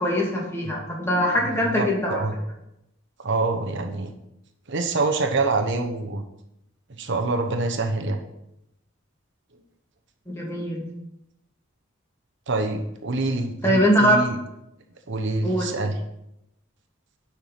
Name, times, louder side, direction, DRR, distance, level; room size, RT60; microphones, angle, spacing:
voice 1, 0.0-2.2 10.3-10.8 13.6-14.2 15.4-15.7, equal, 15° left, -3 dB, 2.5 m, -22 dB
voice 2, 1.8-2.3 3.2-4.1 4.7-6.2 6.9-8.2 12.5-14.4 15.1-16.0, right 3 dB, 60° right, 4 dB, 1.0 m, -26 dB
10.5 x 6.0 x 5.7 m, 0.85 s
head